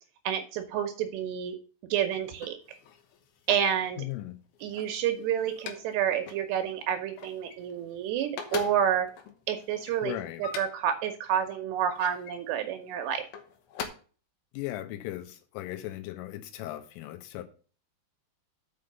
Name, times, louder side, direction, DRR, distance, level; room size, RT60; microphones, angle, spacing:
voice 1, 0.3-1.6 1.9-2.8 3.5-4.0 4.6-9.1 9.5-10.1 10.4-13.2, right 9 dB, 80° right, 2.6 m, -29 dB
sound 1, 2.2-3.8 4.4-6.0 6.3-6.5 6.8-7.9 8.2-11.0 11.6-12.4 13.2-13.9, left 7 dB, 70° left, 2.5 m, -41 dB
voice 2, 4.0-4.4 10.0-10.5 14.5-17.4, left 14 dB, 90° left, 3.5 m, -37 dB
6.6 x 5.5 x 6.6 m
omnidirectional pair, 5.6 m